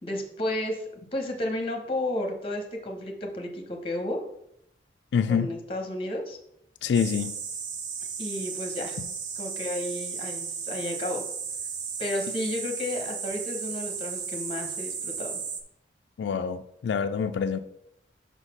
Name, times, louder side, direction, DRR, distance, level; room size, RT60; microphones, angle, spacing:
voice 1, 0.0-4.2 5.3-6.4 8.2-9.0 9.4-11.2 12.0-15.4, left 1 dB, 30° left, 1.1 m, -32 dB
voice 2, 5.1-5.5 6.8-7.4 16.2-17.6, left 6 dB, 80° left, 0.3 m, -26 dB
sound 1, 6.9-15.6, right 6 dB, 45° right, 0.7 m, -35 dB
5.7 x 4.1 x 5.9 m
head